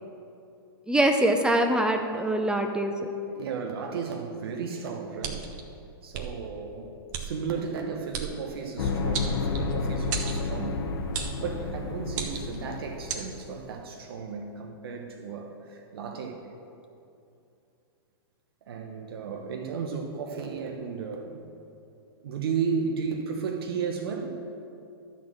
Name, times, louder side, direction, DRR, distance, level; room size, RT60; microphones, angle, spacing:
voice 1, 0.9-2.9, right 1 dB, 5° right, 5 dB, 0.5 m, -23 dB
voice 2, 3.3-5.5 6.0-10.8 11.4-16.4 18.7-21.5 22.2-24.4, right 5 dB, 75° right, 2 dB, 1.1 m, -34 dB
sound 1, 5.2-5.6 6.1-6.3 7.1-7.3 8.1-8.3 9.1-9.7 10.1-10.4 11.1-11.4 12.1-12.6 13.1-13.2, right 7 dB, 50° right, 1.1 m, -33 dB
sound 2, 8.8-13.6, left 4 dB, 70° left, 1.0 m, -31 dB
12.0 x 4.2 x 7.6 m, 2.6 s
hypercardioid pair, 125°, 13 cm